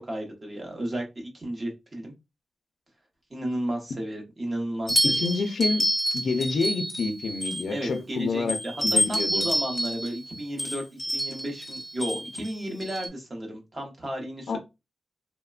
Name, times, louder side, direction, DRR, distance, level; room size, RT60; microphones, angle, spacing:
voice 1, 0.0-2.1 3.3-5.1 7.7-14.6, right 1 dB, 30° right, 0.7 m, -33 dB
sound 1, 4.9-8.0 8.5-13.1, equal, 10° left, 0.8 m, -28 dB
voice 2, 5.0-5.9 6.1-8.6 8.8-9.5 14.5-14.6, left 4 dB, 70° left, 0.4 m, -28 dB
3.0 x 2.1 x 2.3 m
wide cardioid pair, 165°, 0 cm